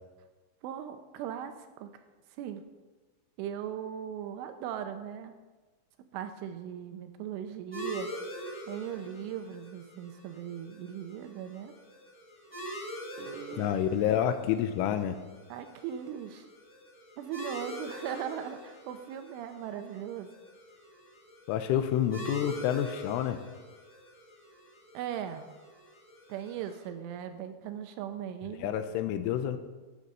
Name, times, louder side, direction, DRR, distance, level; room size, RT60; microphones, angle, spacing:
voice 1, 0.6-1.9 2.4-2.6 3.4-5.4 6.1-8.1 8.7-11.7 13.2-13.8 14.1-14.2 15.5-16.5 17.2-20.3 24.9-25.5 26.3-28.8, right 9 dB, 80° right, 8 dB, 3.0 m, -39 dB
sound 1, 7.7-26.9, equal, 25° left, 3.5 m, -45 dB
voice 2, 13.6-15.2 21.5-23.4 28.6-29.6, left 10 dB, 85° left, 10 dB, 3.1 m, -28 dB
11.5 x 9.5 x 6.6 m, 1.3 s
omnidirectional pair, 5.8 m